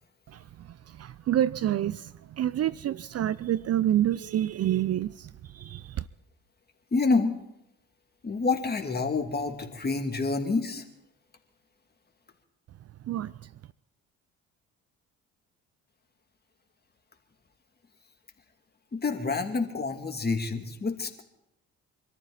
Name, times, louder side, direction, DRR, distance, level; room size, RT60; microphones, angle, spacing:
voice 1, 0.3-6.0 13.1-13.3, right 12 dB, 45° right, 0.6 m, -28 dB
voice 2, 6.9-7.3 8.2-10.8 18.9-21.2, left 4 dB, 30° left, 2.7 m, -28 dB
25.0 x 14.0 x 4.1 m
supercardioid pair, 65°, 34 cm